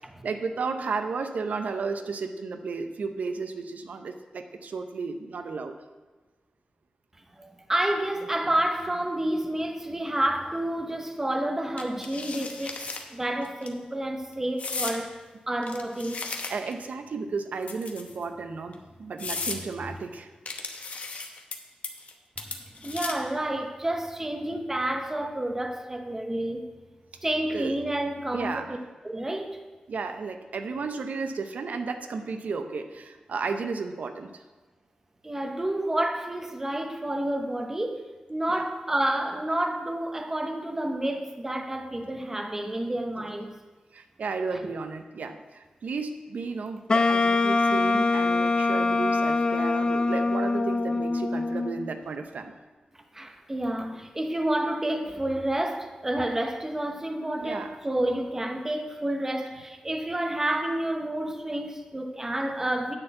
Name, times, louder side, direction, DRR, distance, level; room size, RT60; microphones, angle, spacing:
voice 1, 0.2-5.7 16.5-20.3 27.5-27.8 28.3-28.8 29.9-34.4 38.5-38.6 43.9-52.5 57.1-57.8, right 4 dB, 80° right, 0.6 m, -33 dB
voice 2, 7.4-16.2 22.4-22.5 22.8-26.7 27.2-28.8 29.0-29.6 35.2-43.6 53.1-62.9, right 1 dB, 15° right, 0.7 m, -29 dB
sound 1, 11.8-13.0 13.4-13.7 14.6-15.0 15.6-16.8 17.6-18.2 18.7-18.8 19.2-19.6 20.5-21.6 21.8-22.1 22.4-23.3, left 4 dB, 60° left, 0.9 m, -35 dB
Wind instrument woodwind instrument, 46.9-51.9, left 3 dB, 35° left, 0.3 m, -24 dB
9.8 x 4.4 x 7.7 m
wide cardioid pair, 135°, 3 cm